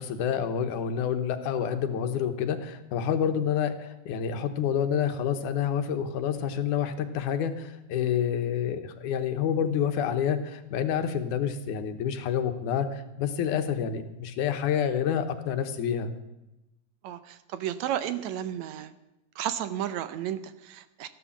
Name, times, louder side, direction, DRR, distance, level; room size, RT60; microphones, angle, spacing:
voice 1, 0.0-16.1, left 8 dB, 90° left, 9 dB, 2.6 m, -28 dB
voice 2, 17.0-18.9 19.4-21.1, right 11 dB, 75° right, 12 dB, 1.9 m, -33 dB
14.5 x 11.5 x 7.2 m, 0.95 s
omnidirectional pair, 3.5 m